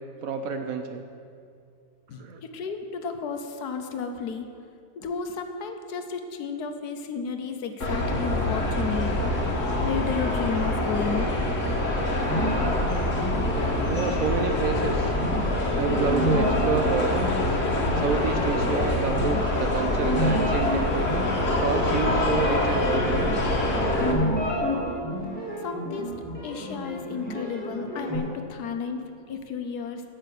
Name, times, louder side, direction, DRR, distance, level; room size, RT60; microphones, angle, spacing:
voice 1, 0.2-1.0 2.2-2.4 13.9-15.2 15.8-17.3 17.9-21.2 21.6-23.3, right 5 dB, 65° right, 6 dB, 0.9 m, -28 dB
voice 2, 2.1-4.5 4.9-9.1 9.8-11.4 25.6-26.1 26.4-30.0, left 5 dB, 70° left, 6 dB, 1.3 m, -33 dB
sound 1, 7.8-24.1, left 1 dB, 50° left, 1.6 m, -25 dB
sound 2, 12.3-28.2, equal, 5° left, 2.1 m, -31 dB
sound 3, 16.1-20.0, left 4 dB, 35° right, 2.1 m, -42 dB
10.5 x 6.4 x 8.2 m, 2.4 s
omnidirectional pair, 1.8 m